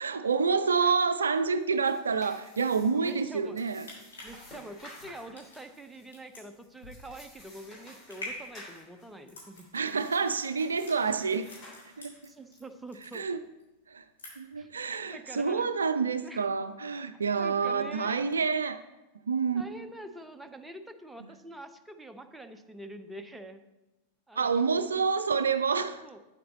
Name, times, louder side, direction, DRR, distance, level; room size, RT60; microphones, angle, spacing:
voice 1, 0.0-3.9 9.7-11.5 12.0-12.3 13.1-13.4 13.9-14.0 14.4-18.8 19.3-19.7 21.2-21.3 24.4-26.0, right 5 dB, 70° right, 12 dB, 0.4 m, -28 dB
sound 1, 1.5-12.4, left 1 dB, 25° left, 3.5 m, -53 dB
voice 2, 2.9-3.6 4.2-9.7 12.3-13.4 14.6-15.7 16.2-16.4 17.1-18.2 19.5-23.6 24.3-24.6 26.0-26.2, right 1 dB, 5° right, 7 dB, 0.7 m, -46 dB
sound 2, 3.6-12.6 12.9-13.6 13.9-14.6 15.0-15.1, left 1 dB, 70° left, 3.5 m, -47 dB
8.7 x 7.8 x 4.0 m, 1.0 s
figure-of-eight pair, 90°, 0 cm